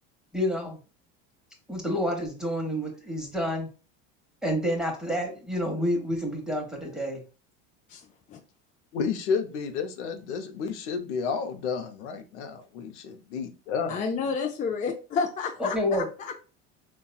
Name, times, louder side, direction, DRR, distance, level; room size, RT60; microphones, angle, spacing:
voice 1, 0.3-0.8 1.7-3.7 4.4-7.2 15.6-16.1, equal, ahead, 0 dB, 0.9 m, -28 dB
voice 2, 7.9-8.4 13.9-16.3, left 5 dB, 25° left, 3 dB, 0.4 m, -31 dB
voice 3, 8.9-14.0, left 5 dB, 85° left, 7 dB, 0.7 m, -31 dB
4.0 x 2.3 x 2.3 m, 0.34 s
supercardioid pair, 100°, 34 cm